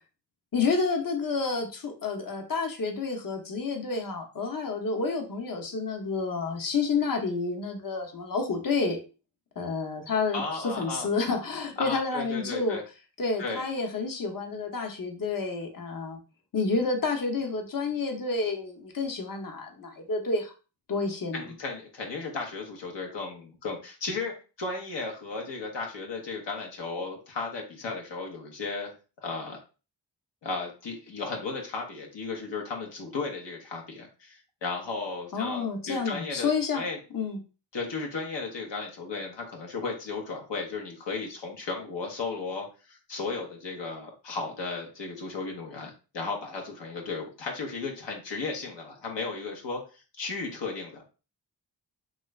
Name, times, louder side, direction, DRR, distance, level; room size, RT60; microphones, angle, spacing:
voice 1, 0.5-9.0 9.6-12.8 13.2-16.2 16.5-20.5 20.9-21.5 35.3-36.8 37.1-37.4, left 4 dB, 50° left, 3 dB, 0.9 m, -29 dB
voice 2, 10.3-11.1 11.8-12.8 13.4-13.6 21.3-28.9 29.2-29.6 30.4-37.0 37.7-49.8 50.2-51.1, left 4 dB, 85° left, 1 dB, 0.9 m, -35 dB
3.0 x 2.4 x 3.1 m, 0.33 s
cardioid pair, 45°, 42 cm